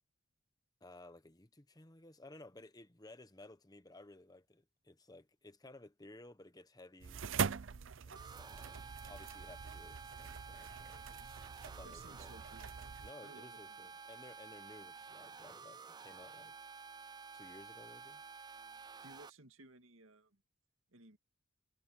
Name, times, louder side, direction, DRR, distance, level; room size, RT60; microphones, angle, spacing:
voice 1, 0.8-7.3 8.0-11.0 11.6-12.4 13.0-16.5 17.3-18.2, left 2 dB, 20° left, 1.1 m, -57 dB
sound 1, 7.0-13.1, right 6 dB, 65° right, 0.6 m, -43 dB
sound 2, 8.2-19.3, right 5 dB, 20° right, 0.4 m, -52 dB
voice 2, 11.8-12.7 13.2-13.9 19.0-20.4 20.9-21.2, right 2 dB, 85° right, 2.2 m, -58 dB
head